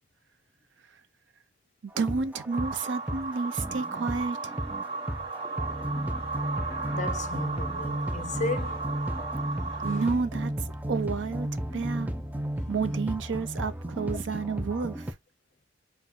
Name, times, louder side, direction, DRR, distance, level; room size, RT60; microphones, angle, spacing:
sound 1, 1.9-15.1, equal, 10° right, 0.4 m, -34 dB
voice 1, 2.0-4.6 9.8-12.1 12.7-15.1, right 4 dB, 70° right, 0.5 m, -31 dB
sound 2, 2.5-10.1, right 4 dB, 30° right, 1.0 m, -35 dB
voice 2, 6.9-8.9 9.8-10.0 12.6-12.7, left 3 dB, 40° left, 0.6 m, -35 dB
4.3 x 2.2 x 3.6 m
head